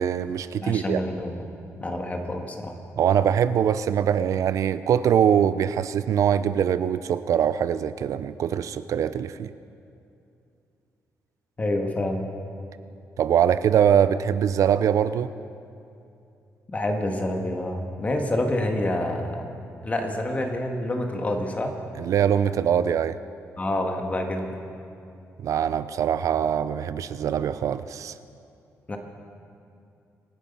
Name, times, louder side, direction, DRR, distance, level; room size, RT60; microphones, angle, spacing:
voice 1, 0.0-1.0 3.0-9.5 13.2-15.3 22.0-23.2 25.4-28.1, right 9 dB, 70° right, 14 dB, 0.5 m, -23 dB
voice 2, 0.6-1.5 1.8-2.8 11.6-12.3 16.7-19.5 19.8-21.7 23.6-24.6 28.9-29.0, left 1 dB, 25° left, 3 dB, 1.8 m, -27 dB
25.5 x 10.0 x 5.6 m, 2.6 s
cardioid pair, 125°, 6 cm